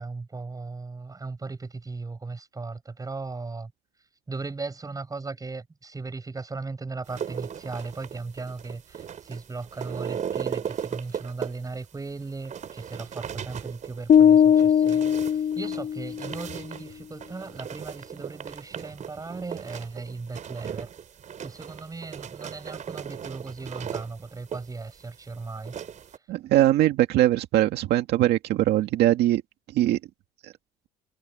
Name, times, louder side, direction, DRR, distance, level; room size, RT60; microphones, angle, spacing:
voice 1, 0.0-3.7 4.3-20.9 21.4-25.8, right 3 dB, 20° right, 7.8 m, -37 dB
sound 1, 7.1-26.2, right 8 dB, 45° right, 4.2 m, -37 dB
sound 2, 14.1-16.3, left 8 dB, 50° left, 1.8 m, -19 dB
voice 2, 26.3-29.4 29.7-30.0 30.4-30.5, right 14 dB, 80° right, 2.0 m, -21 dB
cardioid pair, 110°, 17 cm